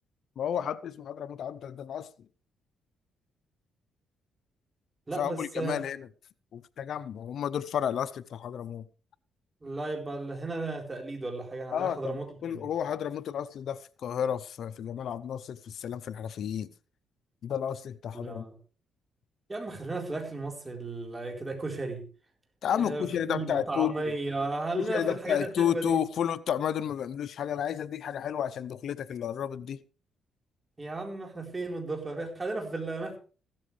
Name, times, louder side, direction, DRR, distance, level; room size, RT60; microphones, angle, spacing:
voice 1, 0.4-2.1 5.2-6.1 6.5-8.8 11.7-16.7 17.4-18.4 22.6-23.9 24.7-29.8, left 9 dB, 65° left, 0.6 m, -31 dB
voice 2, 5.1-5.8 9.6-12.7 18.1-18.5 19.5-22.0 22.7-26.0 30.8-33.2, right 2 dB, 20° right, 4.3 m, -34 dB
15.5 x 13.0 x 3.3 m
cardioid pair, 90°, 0 cm